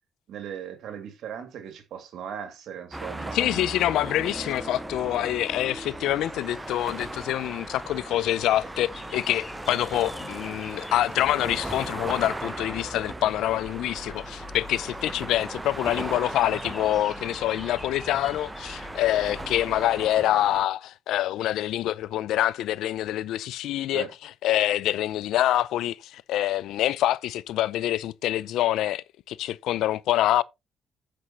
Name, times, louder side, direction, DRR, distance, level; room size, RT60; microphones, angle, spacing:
voice 1, 0.3-3.4 23.9-24.1, right 8 dB, 75° right, 2.4 m, -38 dB
sound 1, 2.9-20.7, right 2 dB, 15° right, 1.0 m, -37 dB
voice 2, 3.3-24.1 24.4-30.4, left 13 dB, 85° left, 0.5 m, -26 dB
sound 2, 4.2-19.8, left 3 dB, 20° left, 2.0 m, -46 dB
8.5 x 6.3 x 4.2 m
cardioid pair, 90°, 0 cm